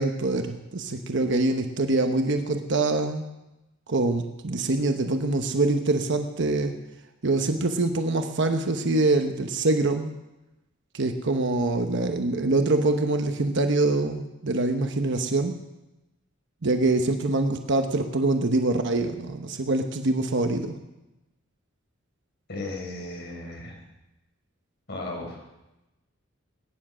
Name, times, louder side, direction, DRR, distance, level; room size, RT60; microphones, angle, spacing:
voice 1, 0.0-3.2 3.9-6.7 7.2-10.1 10.9-15.5 16.6-20.8, right 2 dB, 60° right, 6 dB, 1.0 m, -24 dB
voice 2, 22.5-23.8 24.9-25.4, left 2 dB, 55° left, 0 dB, 4.5 m, -35 dB
20.0 x 10.0 x 6.2 m, 0.99 s
head